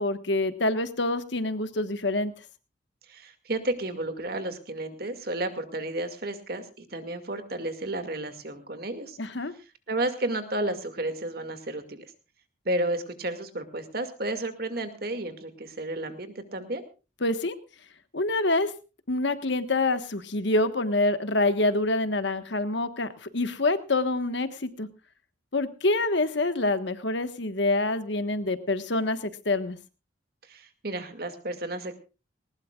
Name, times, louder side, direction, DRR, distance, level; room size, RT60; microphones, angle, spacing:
voice 1, 0.0-2.3 9.2-9.5 17.2-17.6 18.1-18.7 19.1-24.9 25.5-29.8, left 2 dB, 70° left, 10 dB, 1.4 m, -26 dB
voice 2, 3.1-9.2 9.9-12.0 12.6-16.8 30.5-31.9, right 1 dB, 50° right, 8 dB, 2.2 m, -32 dB
20.0 x 19.5 x 2.4 m, 0.32 s
head